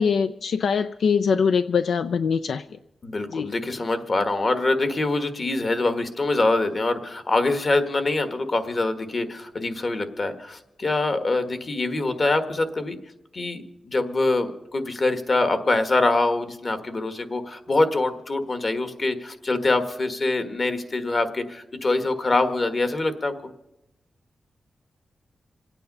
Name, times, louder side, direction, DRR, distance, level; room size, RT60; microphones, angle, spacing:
voice 1, 0.0-2.6 3.3-3.5, left 6 dB, 80° left, 10 dB, 0.4 m, -22 dB
voice 2, 3.0-13.0 13.3-23.3, left 2 dB, 40° left, 8 dB, 1.5 m, -24 dB
27.0 x 9.2 x 5.4 m, 0.93 s
wide cardioid pair, 100°, 0 cm